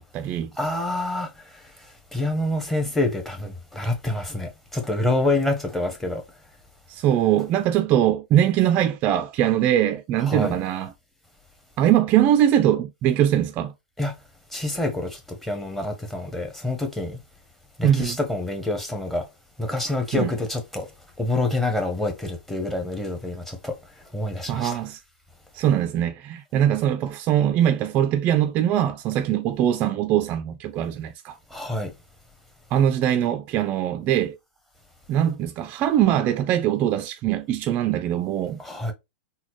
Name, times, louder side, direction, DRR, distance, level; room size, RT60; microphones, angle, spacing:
voice 1, 0.0-0.5 6.9-10.9 11.8-13.7 17.8-18.2 20.1-20.3 24.5-25.0 25.5-31.4 32.7-34.4 35.1-38.6, right 11 dB, 35° right, 0.3 m, -22 dB
voice 2, 0.6-6.2 10.2-10.6 14.0-14.1 14.5-17.2 17.8-19.3 19.6-20.9 21.2-23.8 24.1-24.8 31.5-31.9 38.6-38.9, left 2 dB, 5° left, 0.9 m, -27 dB
4.0 x 2.1 x 3.0 m
hypercardioid pair, 125°, 6 cm